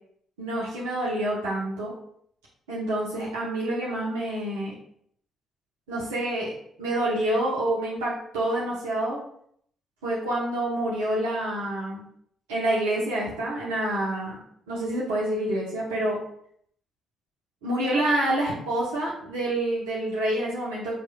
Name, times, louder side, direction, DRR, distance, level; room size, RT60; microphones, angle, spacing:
voice 1, 0.4-1.9 2.7-4.7 5.9-6.5 6.8-9.2 10.0-12.0 12.5-14.4 14.7-16.2 17.6-21.0, right 1 dB, 85° right, -6 dB, 0.9 m, -27 dB
5.1 x 3.0 x 2.3 m, 0.66 s
hypercardioid pair, 45°, 0 cm